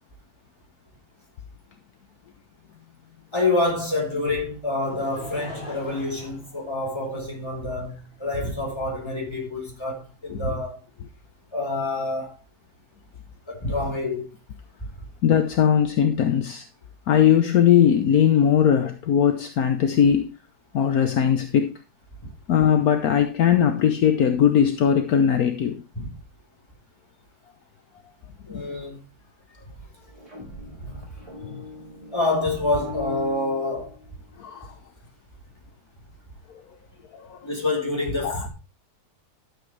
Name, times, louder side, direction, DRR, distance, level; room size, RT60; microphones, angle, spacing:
voice 1, 3.3-10.8 11.5-12.3 13.5-14.3 26.0-26.1 28.5-29.0 30.8-30.9 32.1-34.0 37.4-38.5, left 2 dB, 15° left, 4.4 m, -27 dB
Laughter / Crowd, 4.8-7.4 8.1-8.2, left 1 dB, 40° left, 2.5 m, -42 dB
voice 2, 15.2-16.6 17.1-20.3 20.7-21.7 22.5-25.8 28.5-28.7 30.8-30.9 31.4-31.6 34.4-34.7 37.1-37.4 38.2-38.5, left 8 dB, 70° left, 1.3 m, -20 dB
sound 1, 30.0-34.3, left 4 dB, 20° right, 5.1 m, -40 dB
12.5 x 7.8 x 3.3 m
omnidirectional pair, 1.7 m